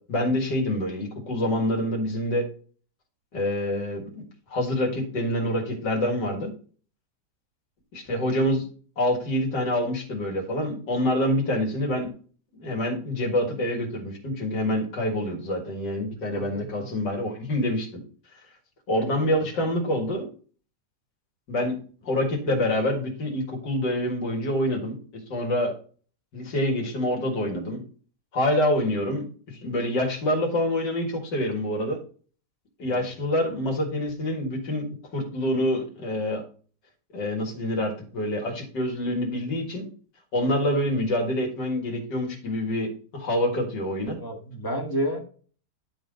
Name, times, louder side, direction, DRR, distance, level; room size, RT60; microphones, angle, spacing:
voice 1, 0.1-2.4 3.3-4.2 4.5-6.5 7.9-8.7 9.0-12.1 12.5-17.9 18.9-20.3 21.5-25.0 25.3-25.7 26.3-27.8 28.3-32.0 32.8-34.9 35.1-36.4 37.1-39.9 40.3-44.2, left 1 dB, 80° left, 0 dB, 2.5 m, -26 dB
voice 2, 16.3-16.9 32.8-33.1 44.1-45.2, equal, 15° left, 2 dB, 1.3 m, -31 dB
11.0 x 3.9 x 5.1 m, 0.42 s
omnidirectional pair, 1.9 m